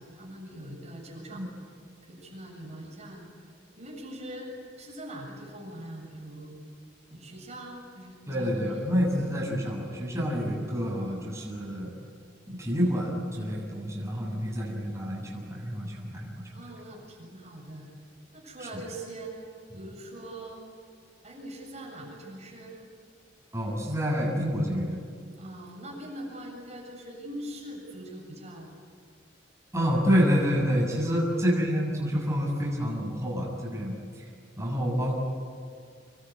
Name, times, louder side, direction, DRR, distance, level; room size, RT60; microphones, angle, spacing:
voice 1, 0.0-1.5 2.0-3.3 3.8-6.6 7.1-8.9 16.5-17.9 18.3-19.4 19.7-20.6 21.2-22.8 25.4-28.7 31.2-31.4, right 1 dB, 40° right, -1 dB, 7.4 m, -42 dB
voice 2, 8.3-11.9 12.5-16.3 23.5-25.0 29.7-34.3 34.6-35.1, equal, 15° right, -3 dB, 7.2 m, -28 dB
27.5 x 22.0 x 9.6 m, 2.2 s
head